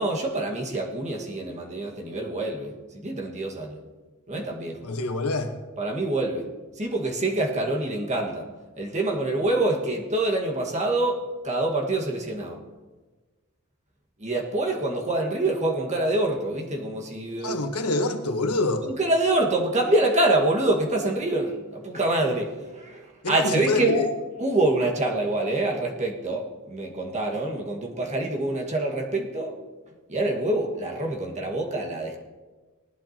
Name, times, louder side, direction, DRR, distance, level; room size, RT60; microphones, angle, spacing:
voice 1, 0.0-3.8 4.3-4.8 5.8-6.5 6.7-8.5 8.8-12.6 14.2-17.7 18.8-24.0 24.4-29.6 30.1-32.2, right 2 dB, 30° right, 0 dB, 1.7 m, -26 dB
voice 2, 4.8-5.5 17.4-18.9 23.2-24.1, left 2 dB, 85° left, 6 dB, 1.3 m, -26 dB
19.0 x 11.0 x 3.0 m, 1.3 s
head